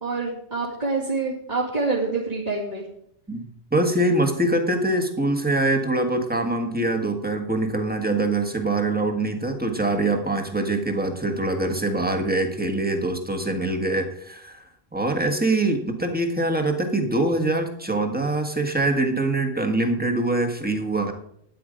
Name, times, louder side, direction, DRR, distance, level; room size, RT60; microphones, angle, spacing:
voice 1, 0.0-2.8, right 3 dB, 40° right, -7 dB, 2.7 m, -26 dB
voice 2, 3.3-14.7 14.9-21.1, right 2 dB, 10° right, 3 dB, 1.6 m, -24 dB
13.0 x 10.0 x 5.2 m, 0.72 s
omnidirectional pair, 1.1 m